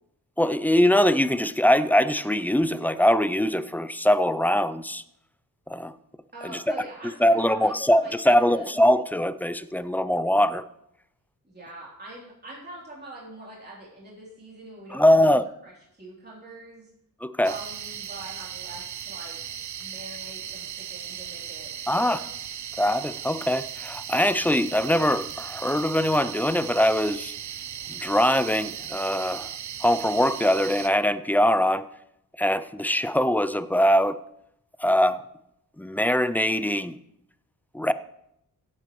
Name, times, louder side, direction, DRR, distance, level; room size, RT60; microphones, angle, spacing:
voice 1, 0.4-5.0 5.7-5.9 6.4-6.7 7.2-10.6 14.9-15.4 17.2-17.6 21.9-22.2 22.8-27.3 27.9-29.5 29.8-31.9 32.4-34.2 34.8-35.2 35.8-37.0 37.7-37.9, equal, 5° left, 14 dB, 0.3 m, -22 dB
voice 2, 6.3-8.7 11.4-16.9 17.4-19.4 19.8-22.6, right 2 dB, 30° right, -5 dB, 3.2 m, -44 dB
sound 1, 17.4-30.9, right 9 dB, 55° right, 0.6 m, -37 dB
16.5 x 8.8 x 3.1 m, 0.78 s
wide cardioid pair, 125°, 34 cm